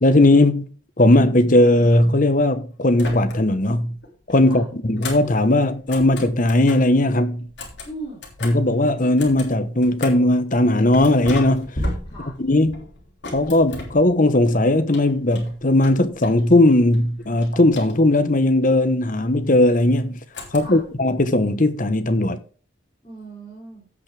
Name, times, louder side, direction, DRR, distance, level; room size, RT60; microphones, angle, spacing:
voice 1, 0.0-0.7 1.0-4.0 4.3-7.5 8.4-11.7 12.4-12.8 13.3-20.2 20.5-22.4, left 1 dB, 40° left, 1.0 m, -18 dB
sound 1, 2.9-3.7 4.0-6.9 7.4-10.3 10.9-14.5 14.9-16.6 16.9-18.3 20.3-21.0, left 1 dB, 60° left, 3.3 m, -35 dB
voice 2, 7.8-8.3 12.0-12.4 20.5-20.8 23.0-23.9, right 2 dB, 25° left, 5.1 m, -38 dB
16.5 x 5.9 x 3.4 m
head